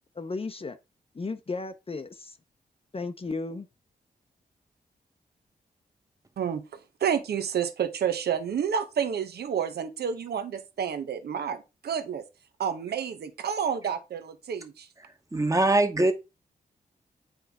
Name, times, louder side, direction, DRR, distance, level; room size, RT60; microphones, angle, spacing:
voice 1, 0.2-0.8 1.1-2.4 2.9-3.7, left 3 dB, 35° left, 0.7 m, -34 dB
voice 2, 6.4-12.2 12.6-14.9, right 8 dB, 80° right, 0.8 m, -30 dB
voice 3, 15.3-16.1, right 2 dB, 20° right, 1.2 m, -22 dB
8.9 x 3.8 x 3.4 m
cardioid pair, 50°, 17 cm